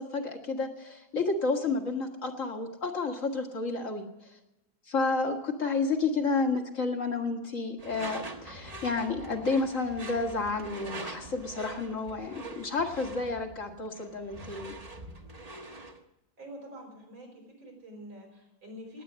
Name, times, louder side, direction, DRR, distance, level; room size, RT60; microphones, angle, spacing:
voice 1, 0.0-4.1 4.9-14.8, left 3 dB, 45° left, 3 dB, 1.9 m, -31 dB
Door / Screech, 7.8-16.0, right 2 dB, 25° right, 1.1 m, -44 dB
voice 2, 16.4-19.0, equal, 85° right, 1 dB, 5.9 m, -46 dB
19.0 x 8.8 x 6.3 m, 0.92 s
omnidirectional pair, 2.1 m